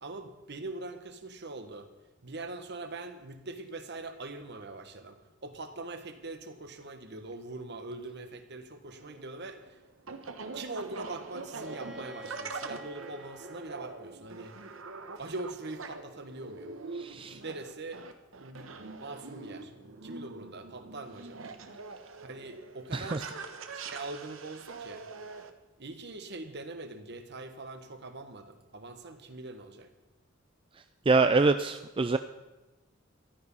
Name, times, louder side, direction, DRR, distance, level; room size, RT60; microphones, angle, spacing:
voice 1, 0.0-1.9 2.2-9.8 10.5-14.5 15.2-16.7 17.4-18.0 18.3-19.7 20.0-21.5 22.2-23.4 23.7-25.0 25.8-29.9, right 2 dB, 55° right, 8 dB, 1.4 m, -42 dB
sound 1, 8.9-25.5, right 4 dB, 75° right, 1.2 m, -44 dB
Bowed string instrument, 11.6-15.3, equal, 5° right, 1.1 m, -50 dB
voice 2, 17.0-17.4 22.9-23.3 31.1-32.2, right 3 dB, 25° right, 9 dB, 0.4 m, -25 dB
14.0 x 12.5 x 5.6 m, 1.1 s
head